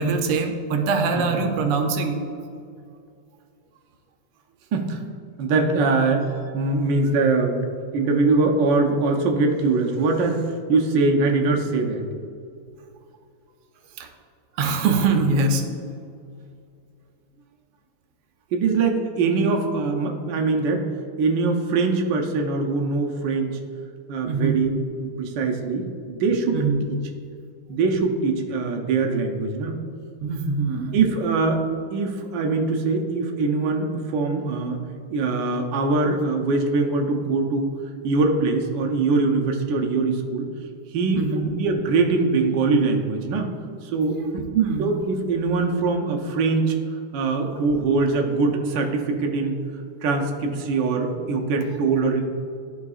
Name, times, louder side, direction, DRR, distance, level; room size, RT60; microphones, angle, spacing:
voice 1, 0.0-2.2 14.0-14.1 14.6-15.6 24.2-24.6 26.5-26.8 30.2-31.0 41.1-41.4 44.3-44.9, right 4 dB, 85° right, 4 dB, 1.6 m, -23 dB
voice 2, 5.4-7.6 7.9-12.0 18.5-20.9 21.2-23.6 24.1-27.0 27.7-29.7 30.9-31.6 31.9-34.8 35.1-37.7 38.0-40.5 40.9-43.5 43.8-44.2 44.8-46.7 47.1-49.6 50.0-52.2, right 3 dB, 65° right, 1 dB, 1.3 m, -22 dB
12.0 x 4.9 x 2.4 m, 2.4 s
omnidirectional pair, 2.4 m